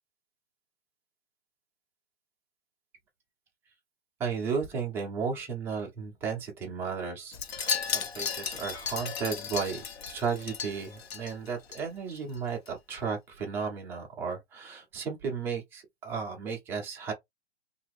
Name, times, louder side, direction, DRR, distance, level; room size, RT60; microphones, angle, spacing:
voice 1, 4.2-17.1, right 5 dB, 10° right, 0.4 m, -34 dB
Wind chime, 7.3-11.8 12.1-12.4 12.7-12.8, left 7 dB, 80° left, 1.1 m, -35 dB
2.9 x 2.4 x 3.2 m
hypercardioid pair, 150°, 31 cm